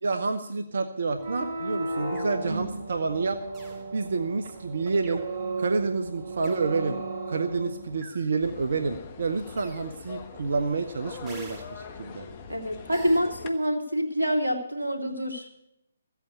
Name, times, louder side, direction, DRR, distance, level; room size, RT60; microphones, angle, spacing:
voice 1, 0.0-3.4 3.9-5.2 5.6-7.0 7.3-12.3, right 4 dB, 60° right, 8 dB, 1.0 m, -29 dB
sound 1, 1.1-8.0, right 2 dB, 45° right, 3.2 m, -35 dB
sound 2, 2.1-2.4 3.5-3.8 5.0-5.4 6.4-6.7 8.0-8.3 9.6-9.9 11.3-11.7 12.9-13.2, right 3 dB, 15° right, 2.7 m, -46 dB
sound 3, 8.4-13.5, left 5 dB, 35° left, 1.2 m, -43 dB
voice 2, 12.5-15.5, equal, 90° right, 4 dB, 2.6 m, -27 dB
15.5 x 8.4 x 8.1 m, 0.79 s
figure-of-eight pair, 135°, 0 cm